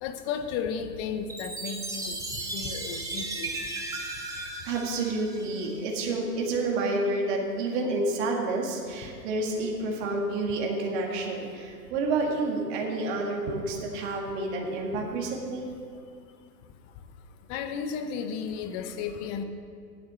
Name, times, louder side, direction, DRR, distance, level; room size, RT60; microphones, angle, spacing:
voice 1, 0.0-2.2 2.5-3.5 11.1-11.3 17.5-19.4, left 6 dB, 25° left, 8 dB, 0.8 m, -33 dB
Chime, 1.3-5.8, right 2 dB, 5° right, 1.1 m, -36 dB
voice 2, 4.3-15.7, right 2 dB, 40° right, -1 dB, 1.9 m, -29 dB
9.3 x 8.6 x 7.6 m, 2.4 s
hypercardioid pair, 130°, 49 cm